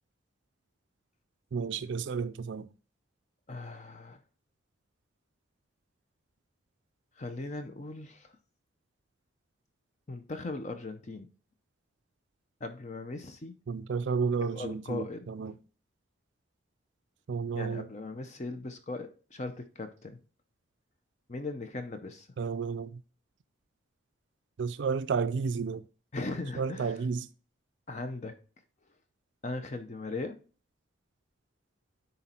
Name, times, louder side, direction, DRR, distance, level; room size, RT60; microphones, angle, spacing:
voice 1, 1.5-2.7 13.7-15.5 17.3-17.9 22.4-22.9 24.6-25.8 26.6-27.3, right 5 dB, 65° right, 0.4 m, -31 dB
voice 2, 3.5-4.2 7.2-8.4 10.1-11.3 12.6-13.5 14.5-15.3 17.6-20.2 21.3-22.3 26.1-27.0 27.9-28.4 29.4-30.4, left 2 dB, 35° left, 0.6 m, -38 dB
9.9 x 4.0 x 4.3 m
head